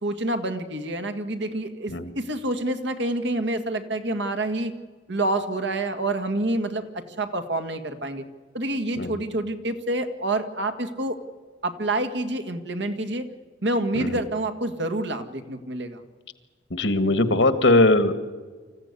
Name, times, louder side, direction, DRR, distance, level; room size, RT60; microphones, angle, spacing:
voice 1, 0.0-4.7 5.1-8.2 8.5-11.2 11.6-13.3 13.6-16.0, right 1 dB, 65° right, 7 dB, 1.9 m, -27 dB
voice 2, 16.7-18.2, left 2 dB, 70° left, 12 dB, 1.7 m, -20 dB
25.5 x 15.0 x 9.8 m, 1.4 s
head